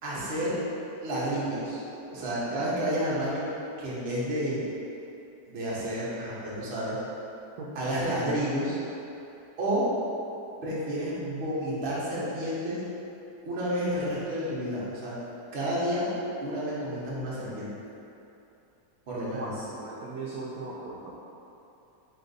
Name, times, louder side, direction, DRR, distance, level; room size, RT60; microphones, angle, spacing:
voice 1, 0.0-0.6 1.0-1.8 2.1-3.5 3.8-4.6 5.5-7.0 7.7-8.8 9.6-9.9 10.6-12.8 13.4-15.2 15.5-16.1 16.4-17.7 19.1-19.5, equal, 45° right, -8 dB, 0.9 m, -30 dB
voice 2, 19.3-21.2, right 3 dB, 70° right, -6 dB, 0.9 m, -38 dB
4.2 x 2.6 x 3.9 m, 2.8 s
omnidirectional pair, 1.9 m